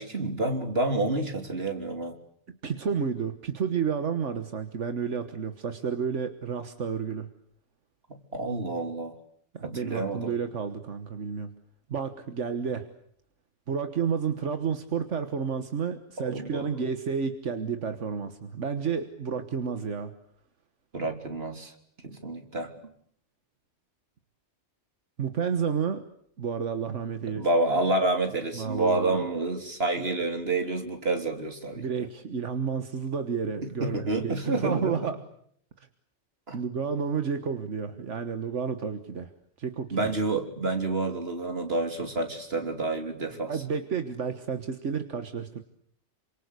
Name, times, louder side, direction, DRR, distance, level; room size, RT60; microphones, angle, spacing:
voice 1, 0.0-2.2 8.1-9.2 9.6-10.3 16.3-16.7 20.9-21.7 22.0-22.7 27.4-31.9 33.8-35.1 36.5-36.6 39.9-43.5, right 2 dB, 55° right, 5 dB, 3.6 m, -29 dB
voice 2, 2.5-7.3 9.5-11.5 11.9-12.9 13.7-20.1 22.1-22.2 25.2-26.1 26.4-27.5 28.5-29.3 30.0-30.1 31.8-35.3 36.5-39.3 39.6-40.1 43.5-45.6, right 6 dB, 80° right, 8 dB, 1.7 m, -31 dB
28.0 x 25.5 x 8.3 m, 0.67 s
omnidirectional pair, 1.2 m